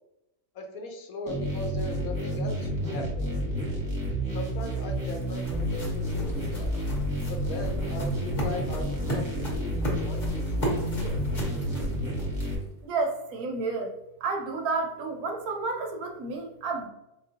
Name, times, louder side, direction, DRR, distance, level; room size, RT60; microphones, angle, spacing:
voice 1, 0.5-3.3 4.3-6.7 7.3-11.2, left 2 dB, 70° left, 3 dB, 1.0 m, -39 dB
sound 1, 1.3-12.5, equal, 20° right, 0.7 m, -30 dB
sound 2, 4.2-12.8, right 1 dB, 35° left, 1.0 m, -35 dB
voice 2, 12.8-13.9 14.2-16.9, right 3 dB, 70° right, 3 dB, 1.0 m, -31 dB
4.2 x 2.9 x 2.7 m, 0.91 s
omnidirectional pair, 1.7 m